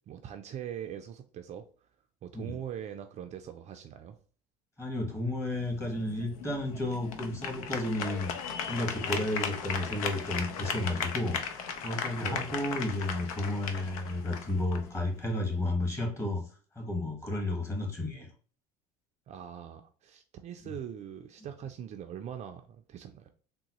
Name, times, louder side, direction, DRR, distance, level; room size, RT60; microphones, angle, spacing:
voice 1, 0.1-1.9 2.2-4.2 12.2-12.5 19.3-23.3, right 9 dB, 40° right, 0.4 m, -42 dB
voice 2, 4.8-8.3 8.7-16.4 16.7-18.3 20.6-20.7, left 1 dB, 15° left, 1.3 m, -32 dB
sound 1, 5.5-15.6, left 6 dB, 90° left, 0.5 m, -37 dB
3.7 x 2.1 x 2.9 m
supercardioid pair, 100°, 18 cm